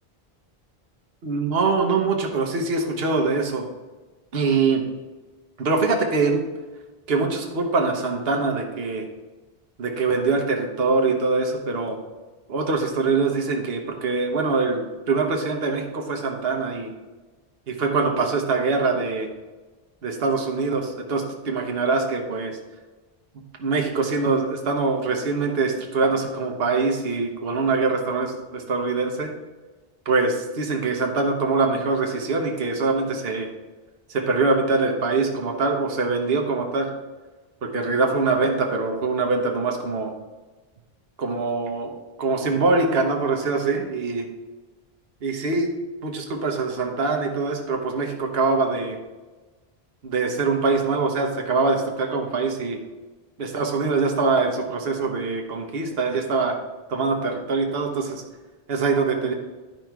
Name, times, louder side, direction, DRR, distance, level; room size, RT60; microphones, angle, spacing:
voice 1, 1.2-3.7 4.3-4.8 5.6-6.4 7.1-9.1 9.8-12.0 12.5-16.9 17.7-19.3 20.0-22.6 23.6-29.3 30.0-33.5 34.1-36.9 37.6-40.1 41.2-41.9 42.2-44.3 45.2-45.8 46.0-49.0 50.0-52.8 53.4-56.6 56.9-58.2 58.7-59.3, right 4 dB, 70° right, 2 dB, 1.2 m, -23 dB
11.0 x 5.2 x 4.6 m, 1.2 s
omnidirectional pair, 1.0 m